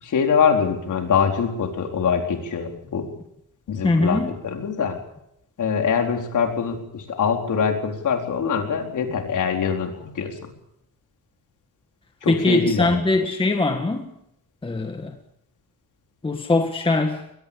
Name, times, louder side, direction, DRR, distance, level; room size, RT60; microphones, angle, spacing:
voice 1, 0.0-3.1 3.7-5.0 5.6-10.5 12.2-13.0, left 6 dB, 55° left, 3 dB, 4.3 m, -23 dB
voice 2, 3.8-4.3 12.3-14.1 14.6-15.1 16.2-17.2, left 3 dB, 15° left, 4 dB, 1.8 m, -21 dB
22.5 x 20.5 x 7.0 m, 0.77 s
wide cardioid pair, 175°, 36 cm